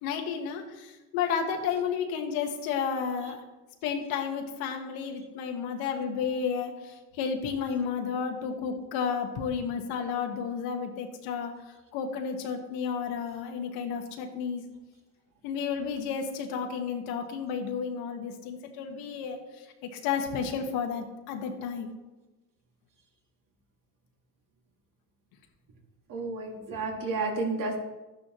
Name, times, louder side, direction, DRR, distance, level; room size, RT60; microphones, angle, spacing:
voice 1, 0.0-3.4 3.8-11.5 11.9-14.6 15.4-19.7 19.9-21.9, left 6 dB, 85° left, 4 dB, 1.6 m, -32 dB
voice 2, 26.1-27.8, right 3 dB, 65° right, 1 dB, 2.3 m, -31 dB
12.5 x 9.5 x 3.1 m, 1.1 s
cardioid pair, 100°, 35 cm